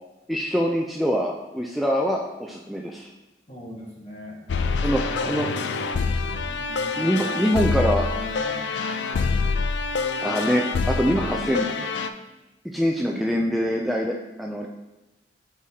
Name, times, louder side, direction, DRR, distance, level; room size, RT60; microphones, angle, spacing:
voice 1, 0.3-3.1 4.8-5.5 7.0-8.0 10.2-11.7 12.6-14.7, equal, ahead, -1 dB, 0.3 m, -24 dB
voice 2, 3.5-6.0 6.3-9.2 9.9-10.3 11.7-11.9, left 1 dB, 35° left, -2 dB, 1.3 m, -42 dB
sound 1, 4.5-12.1, left 4 dB, 85° left, 0.4 m, -26 dB
7.4 x 4.8 x 2.8 m, 1.0 s
head